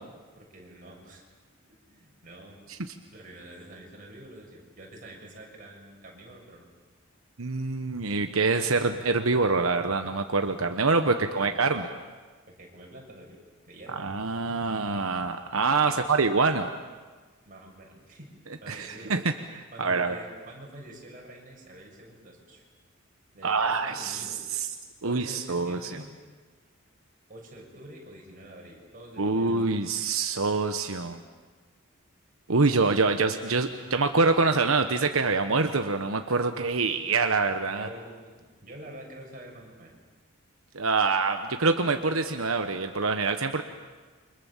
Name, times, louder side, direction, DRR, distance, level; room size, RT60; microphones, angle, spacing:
voice 1, 0.4-1.2 1.7-2.6 3.1-6.7 11.4-11.7 12.5-13.4 13.7-14.1 15.9-16.2 17.5-18.3 18.6-19.1 19.7-22.6 23.3-24.4 25.0-26.1 27.3-29.9 37.7-39.9, right 1 dB, 40° right, -1 dB, 7.0 m, -47 dB
voice 2, 7.4-11.9 13.9-16.7 18.7-20.2 23.4-24.7 25.0-26.0 29.2-31.2 32.5-37.9 40.7-43.6, right 4 dB, 85° right, 7 dB, 1.2 m, -25 dB
29.0 x 25.5 x 7.3 m, 1.4 s
head